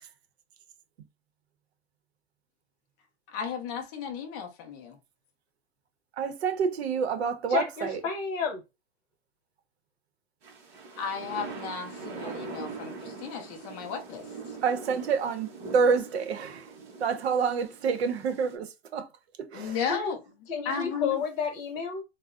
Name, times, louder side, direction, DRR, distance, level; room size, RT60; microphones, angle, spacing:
voice 1, 3.3-4.9 11.0-14.2 19.5-20.2 20.7-21.2, left 6 dB, 20° left, 0.3 m, -34 dB
voice 2, 6.2-8.0 14.6-16.7 17.0-19.1 19.4-19.8, right 6 dB, 85° right, 0.7 m, -28 dB
voice 3, 7.5-8.6 19.9-20.1 20.5-22.0, left 6 dB, 45° left, 0.8 m, -31 dB
sound 1, 10.4-18.5, right 4 dB, 30° right, 0.7 m, -42 dB
3.5 x 2.0 x 2.4 m
supercardioid pair, 155°, 31 cm